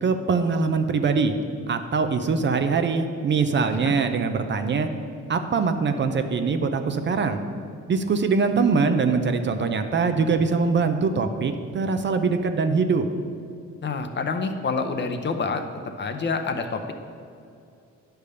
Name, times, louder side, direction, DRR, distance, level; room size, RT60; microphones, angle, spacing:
voice 1, 0.0-1.3 1.7-4.9 5.3-7.4 7.9-13.0, right 4 dB, 40° right, 8 dB, 0.5 m, -23 dB
voice 2, 13.8-15.6 16.0-16.9, left 4 dB, 35° left, 6 dB, 0.6 m, -27 dB
9.8 x 3.4 x 6.7 m, 2.4 s
cardioid pair, 90°, 30 cm